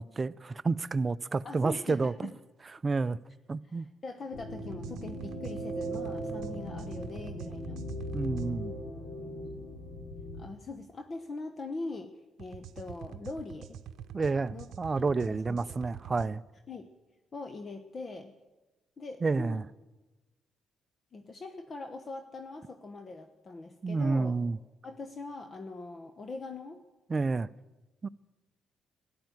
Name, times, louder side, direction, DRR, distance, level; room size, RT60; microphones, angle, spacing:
voice 1, 0.0-2.3 2.8-3.2 3.5-3.9 8.1-8.7 14.1-16.4 19.2-19.6 23.8-24.6 27.1-27.5 28.0-28.1, right 4 dB, 30° right, 0.4 m, -30 dB
voice 2, 1.4-2.3 3.7-7.9 9.2-9.6 10.4-12.1 12.4-13.8 14.5-14.7 15.0-15.8 16.7-16.9 17.3-18.3 19.0-19.7 21.1-24.4 24.8-26.8, left 3 dB, 40° left, 1.0 m, -42 dB
sound 1, 4.3-10.4, equal, 65° left, 3.2 m, -38 dB
sound 2, 4.6-8.5 12.4-16.3, right 8 dB, 80° right, 0.7 m, -46 dB
13.5 x 10.5 x 9.3 m
cardioid pair, 90°, 0 cm